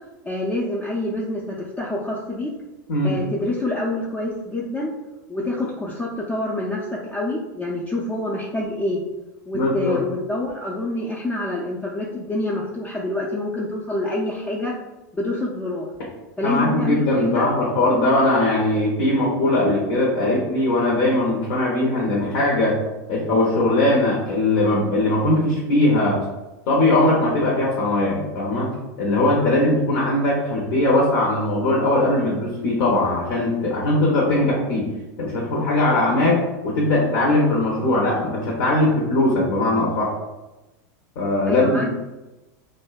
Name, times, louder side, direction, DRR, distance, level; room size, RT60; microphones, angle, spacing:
voice 1, 0.2-2.5 3.0-4.9 5.3-9.0 9.5-14.7 15.1-15.9 16.4-17.5 41.4-41.9, left 1 dB, 15° left, -5 dB, 0.3 m, -26 dB
voice 2, 9.5-10.0 16.4-22.8 23.1-26.2 26.7-28.7 29.0-34.9 35.2-40.1 41.2-41.9, left 2 dB, 65° left, -3 dB, 0.6 m, -20 dB
2.6 x 2.1 x 2.2 m, 1.1 s
supercardioid pair, 115°, 10 cm